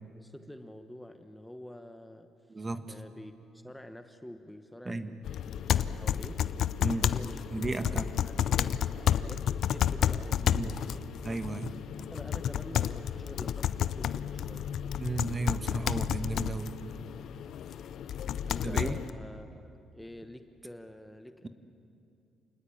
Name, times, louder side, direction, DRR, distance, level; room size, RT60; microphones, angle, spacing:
voice 1, 0.1-2.3 2.9-7.5 7.8-11.1 12.0-14.9 18.4-21.5, left 1 dB, 5° left, 8 dB, 1.1 m, -48 dB
voice 2, 2.5-2.9 4.8-5.1 6.8-7.0 7.5-8.1 10.5-10.7 11.2-11.8 15.0-16.8 18.6-19.0, right 3 dB, 25° right, 9 dB, 1.4 m, -34 dB
sound 1, 5.2-19.1, left 10 dB, 65° left, 0.6 m, -31 dB
27.5 x 20.0 x 8.8 m, 2.6 s
cardioid pair, 100°, 0 cm